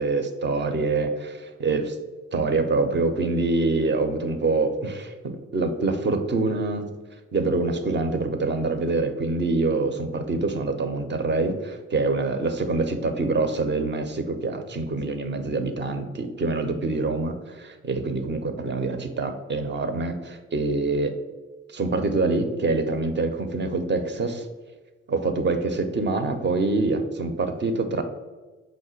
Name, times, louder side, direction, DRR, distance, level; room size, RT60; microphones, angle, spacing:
voice 1, 0.0-2.0 2.3-6.9 7.3-21.1 21.7-24.5 25.1-28.0, right 3 dB, 35° right, 7 dB, 0.6 m, -25 dB
4.8 x 2.1 x 4.4 m, 1.3 s
hypercardioid pair, 40°, 34 cm